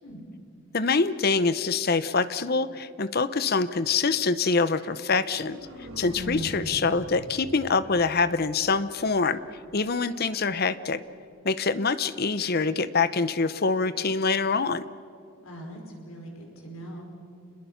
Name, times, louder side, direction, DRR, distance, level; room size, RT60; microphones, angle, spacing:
voice 1, 0.7-5.6 6.0-9.4 9.7-11.0 11.4-14.8, left 4 dB, 45° left, 15 dB, 0.7 m, -25 dB
sound 1, 5.0-9.0, equal, 75° right, 3.7 m, -40 dB
voice 2, 15.4-17.0, right 1 dB, 80° left, 0 dB, 5.3 m, -41 dB
27.5 x 21.0 x 5.7 m, 2.6 s
head